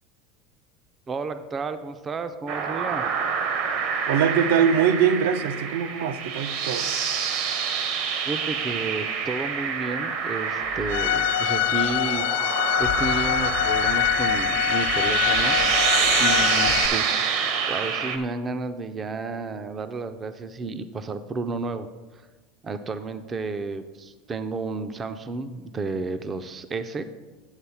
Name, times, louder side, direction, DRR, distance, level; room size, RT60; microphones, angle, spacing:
voice 1, 1.1-3.0 8.2-12.3 12.8-15.9 16.2-17.4 17.7-21.9 22.6-27.0, right 3 dB, 20° right, 10 dB, 0.4 m, -32 dB
sound 1, 2.5-18.2, right 6 dB, 55° right, 0.9 m, -26 dB
voice 2, 4.1-6.9, right 8 dB, 80° right, 10 dB, 0.6 m, -22 dB
sound 2, 10.6-12.3 12.8-16.8, left 6 dB, 55° left, 0.7 m, -39 dB
Bowed string instrument, 10.9-16.9, left 14 dB, 70° left, 0.3 m, -24 dB
8.8 x 3.9 x 7.0 m, 1.2 s
supercardioid pair, 165°, 0 cm